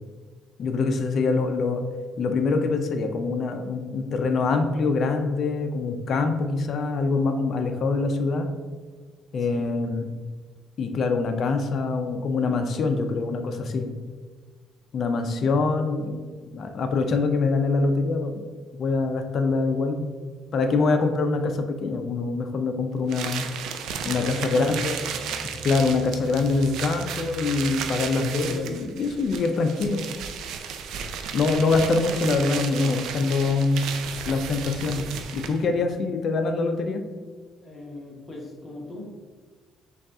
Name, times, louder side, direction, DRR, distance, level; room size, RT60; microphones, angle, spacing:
voice 1, 0.6-1.8 2.2-8.5 9.3-10.1 10.8-13.9 14.9-16.2 16.5-18.4 18.7-20.1 20.5-23.5 24.0-25.0 25.6-30.1 31.3-33.8 34.2-37.0, left 3 dB, 50° left, 5 dB, 0.5 m, -24 dB
sound 1, 23.1-35.7, right 7 dB, 80° right, 0.4 m, -34 dB
voice 2, 24.0-24.5 37.6-39.2, left 1 dB, 25° left, -3 dB, 1.2 m, -39 dB
sound 2, 24.0-29.1, right 1 dB, 10° right, 0.4 m, -42 dB
5.2 x 2.4 x 3.6 m, 1.4 s
cardioid pair, 115°, 0 cm